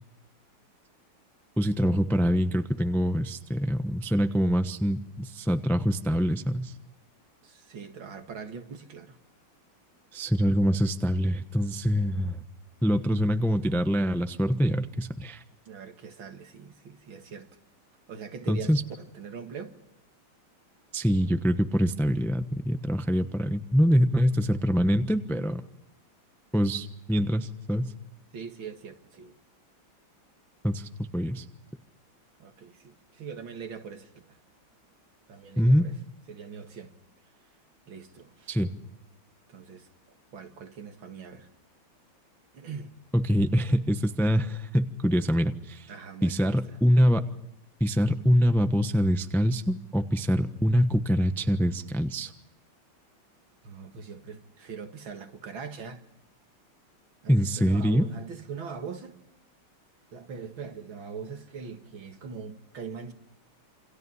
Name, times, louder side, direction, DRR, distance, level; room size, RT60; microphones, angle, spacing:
voice 1, 1.6-6.7 10.1-12.4 12.8-15.4 18.5-18.8 20.9-25.6 26.5-27.9 30.6-31.4 35.6-35.9 38.5-38.7 43.1-45.9 46.2-47.3 47.8-52.3 57.3-58.1, equal, ahead, 0.5 m, -24 dB
voice 2, 7.4-9.2 15.7-17.5 18.1-19.8 28.3-29.4 32.4-34.4 35.3-36.0 36.3-36.9 37.9-38.5 39.5-39.9 40.3-41.5 42.5-42.9 45.9-46.8 53.6-56.0 57.2-59.1 60.1-63.1, right 6 dB, 70° right, 2.6 m, -42 dB
28.0 x 27.0 x 5.6 m
omnidirectional pair, 2.3 m